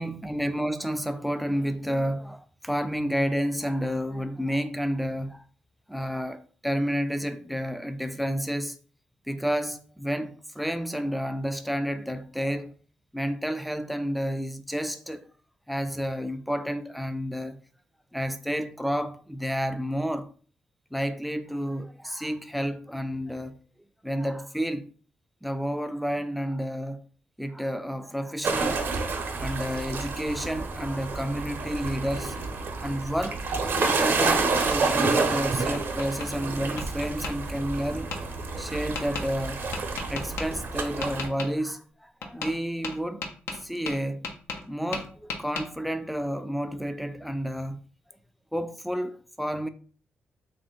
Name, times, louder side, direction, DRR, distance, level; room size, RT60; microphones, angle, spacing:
voice 1, 0.0-5.4 5.9-8.8 9.3-12.7 13.1-15.3 15.7-17.6 18.1-20.3 20.9-23.6 24.0-24.9 25.4-27.0 27.4-28.9 29.3-32.4 32.8-33.5 33.8-39.6 40.1-43.2 43.6-44.3 44.7-47.8 48.5-49.7, equal, ahead, 0.4 m, -30 dB
sound 1, 28.4-41.3, right 4 dB, 60° right, 0.7 m, -29 dB
Tap, 35.7-36.3 36.8-37.3 38.1-38.2 39.0-39.3 39.7-40.5 41.0-41.5 42.2-42.6 42.8-44.7 44.9-45.7, left 4 dB, 80° left, 0.8 m, -35 dB
3.3 x 2.6 x 3.8 m
cardioid pair, 75°, 4 cm